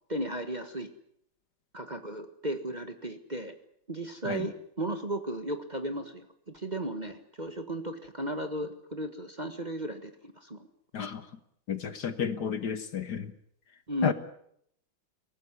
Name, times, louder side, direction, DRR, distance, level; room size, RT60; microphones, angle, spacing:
voice 1, 0.1-0.9 1.7-3.5 3.9-10.7 13.9-14.1, right 1 dB, 25° right, 1.6 m, -35 dB
voice 2, 11.7-13.3 14.0-14.1, left 7 dB, 55° left, 1.7 m, -31 dB
23.0 x 18.0 x 9.8 m
omnidirectional pair, 2.2 m